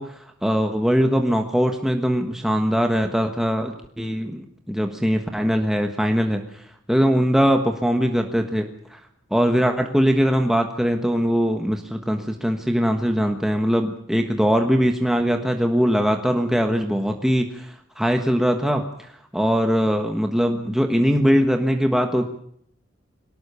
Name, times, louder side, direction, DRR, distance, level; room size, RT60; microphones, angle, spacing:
voice 1, 0.0-9.0 9.3-22.2, equal, ahead, 4 dB, 1.4 m, -21 dB
23.0 x 19.0 x 7.0 m, 0.67 s
head